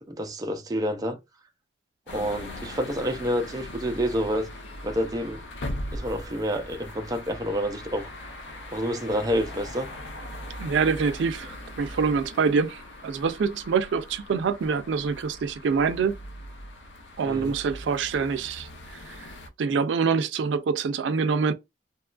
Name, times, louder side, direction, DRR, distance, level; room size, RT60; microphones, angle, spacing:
voice 1, 0.1-1.2 2.1-4.5 4.8-5.4 5.9-8.1 8.7-9.9 17.2-17.5, equal, 20° right, 0.4 m, -28 dB
sound 1, 2.1-19.5, left 1 dB, 85° left, 0.6 m, -40 dB
voice 2, 10.6-16.1 17.2-18.7 19.1-19.3 19.6-21.5, right 5 dB, 90° right, 0.4 m, -25 dB
2.8 x 2.3 x 2.3 m
head